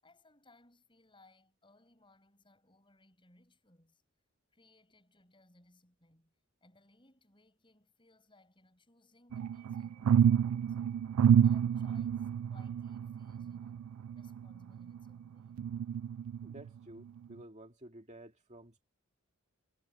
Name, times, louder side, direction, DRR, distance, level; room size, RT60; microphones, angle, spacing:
voice 1, 0.0-4.0 4.5-6.3 6.6-10.8 11.4-13.9 14.1-15.7, left 2 dB, 20° left, 7.1 m, -65 dB
sound 1, 9.3-15.1 15.6-16.7 17.2-17.3, right 8 dB, 75° right, 0.3 m, -29 dB
voice 2, 16.4-18.8, right 1 dB, 30° right, 2.2 m, -52 dB
head